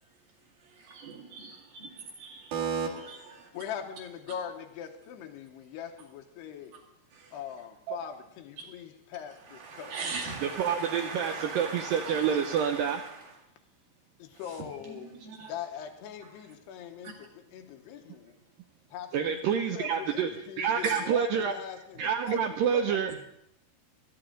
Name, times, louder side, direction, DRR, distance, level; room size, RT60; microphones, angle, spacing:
voice 1, 0.6-3.4 7.1-7.3 8.6-8.7 9.5-13.2 14.8-15.5 17.0-17.1 20.8-21.0, right 5 dB, 65° right, -2 dB, 3.9 m, -38 dB
voice 2, 3.5-6.7 7.3-9.9 14.2-15.2 15.5-18.4 18.9-22.4 22.7-22.8, left 8 dB, 90° left, 5 dB, 3.1 m, -41 dB
voice 3, 10.1-13.0 19.1-20.3 20.6-21.6 22.0-23.2, right 7 dB, 85° right, 6 dB, 2.0 m, -28 dB
17.0 x 13.0 x 3.8 m, 0.80 s
omnidirectional pair, 4.7 m